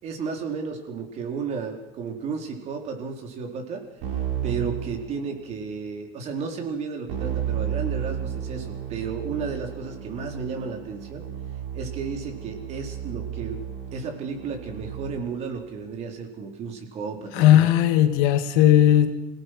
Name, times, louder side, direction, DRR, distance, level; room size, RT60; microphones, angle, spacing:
voice 1, 0.0-3.8 4.4-11.3 11.7-13.6 13.9-17.7, right 5 dB, 45° right, 4 dB, 4.1 m, -33 dB
Keyboard (musical), 4.0-5.7 7.1-15.5, right 9 dB, 65° right, 4.9 m, -33 dB
voice 2, 17.3-19.1, left 12 dB, 75° left, 8 dB, 2.1 m, -17 dB
26.5 x 18.0 x 6.1 m, 0.91 s
cardioid pair, 145°, 15 cm